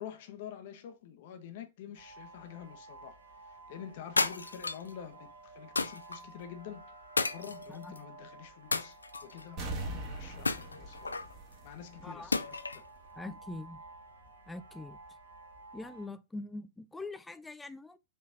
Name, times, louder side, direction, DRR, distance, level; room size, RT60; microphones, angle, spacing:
voice 1, 0.0-6.9 7.3-9.0 9.2-11.2 11.6-12.8, left 9 dB, 55° left, 0.9 m, -47 dB
sound 1, 1.9-16.1, right 3 dB, 85° right, 1.2 m, -53 dB
sound 2, 4.2-4.9 5.8-6.2 7.2-8.0 8.7-9.4 10.4-11.3 12.3-12.9, left 3 dB, 85° left, 0.3 m, -32 dB
sound 3, 9.6-12.2 12.5-12.6, right 2 dB, 40° right, 1.7 m, -41 dB
voice 2, 12.0-12.3 13.2-13.8 14.5-15.0 15.7-18.0, left 2 dB, 10° left, 0.5 m, -43 dB
5.5 x 3.1 x 2.5 m
figure-of-eight pair, 100°, 0 cm